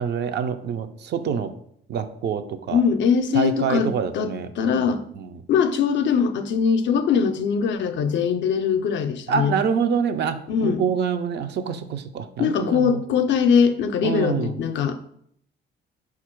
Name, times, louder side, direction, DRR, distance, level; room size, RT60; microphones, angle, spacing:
voice 1, 0.0-1.5 1.9-2.8 3.3-5.4 9.3-13.0 14.0-14.6, right 7 dB, 60° right, 10 dB, 0.4 m, -26 dB
voice 2, 2.7-4.3 4.6-5.0 5.5-9.6 10.5-10.8 12.4-15.0, left 6 dB, 70° left, 9 dB, 0.5 m, -21 dB
4.2 x 2.4 x 4.4 m, 0.68 s
cardioid pair, 90°, 20 cm